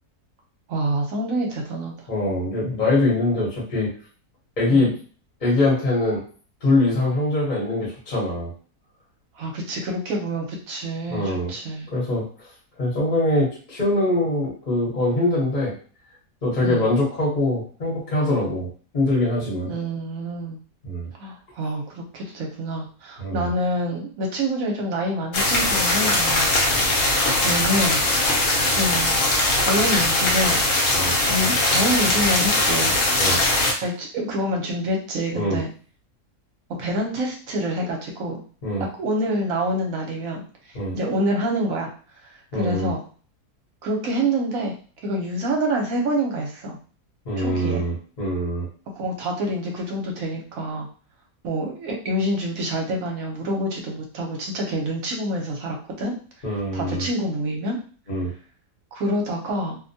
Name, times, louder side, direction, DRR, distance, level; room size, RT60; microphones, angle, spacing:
voice 1, 0.7-1.9 4.7-4.9 9.4-11.9 16.6-16.9 19.6-20.6 21.2-26.5 27.4-28.0 28.7-29.1 29.6-30.6 31.2-32.9 33.8-35.7 36.8-38.4 39.0-40.4 40.7-41.9 42.5-43.0 43.8-44.7 45.0-46.8 47.4-47.8 49.0-50.9 51.4-56.1 56.7-57.8 58.9-59.8, right 1 dB, 65° right, 0 dB, 1.0 m, -26 dB
voice 2, 2.1-3.9 4.6-4.9 5.4-6.2 6.6-8.5 11.1-11.5 11.9-12.5 12.8-15.7 16.4-18.7 18.9-19.7 20.8-21.1 23.2-23.5 26.7-26.9 30.9-31.2 33.2-33.4 35.3-35.6 38.6-38.8 40.7-41.0 42.5-42.9 47.2-48.7 56.4-57.1 58.1-58.3, left 1 dB, 35° left, -6 dB, 1.0 m, -23 dB
sound 1, 25.3-33.7, left 2 dB, 60° left, 1.1 m, -20 dB
2.7 x 2.1 x 2.6 m, 0.41 s
omnidirectional pair, 1.7 m